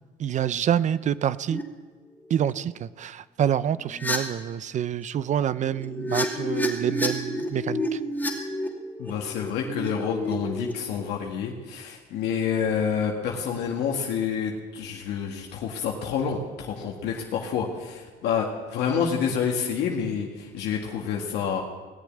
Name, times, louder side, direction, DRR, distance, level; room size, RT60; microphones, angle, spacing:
voice 1, 0.2-1.6 2.3-8.0, right 9 dB, 45° right, 17 dB, 0.5 m, -27 dB
sound 1, 1.5-1.6 2.2-2.5 3.9-4.2 5.5-10.7, left 1 dB, 10° left, 2.5 m, -30 dB
voice 2, 9.0-21.6, left 7 dB, 80° left, 0 dB, 1.8 m, -28 dB
18.0 x 7.2 x 9.8 m, 1.5 s
cardioid pair, 110°, 17 cm